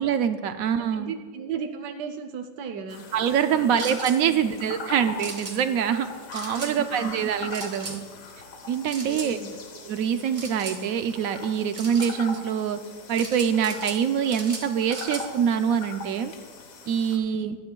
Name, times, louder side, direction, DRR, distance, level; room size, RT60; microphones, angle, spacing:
voice 1, 0.0-1.1 3.1-6.1 6.3-8.0 8.7-9.4 9.8-12.8 13.1-16.3 16.9-17.6, right 8 dB, 70° right, 9 dB, 0.9 m, -25 dB
voice 2, 0.9-3.0 3.5-3.8 4.3-4.5 6.5-6.9 9.0-9.6 17.2-17.4, right 6 dB, 85° right, 6 dB, 1.3 m, -35 dB
sound 1, 2.9-17.2, left 3 dB, 60° left, 1.4 m, -41 dB
sound 2, 3.8-4.2 5.2-5.5 6.3-6.7 7.5-8.0 8.9-9.3 10.3-10.8 11.7-12.1 13.1-14.0 14.3-15.2, right 3 dB, 40° right, 1.8 m, -37 dB
21.0 x 9.4 x 2.3 m, 1.5 s
omnidirectional pair, 1.8 m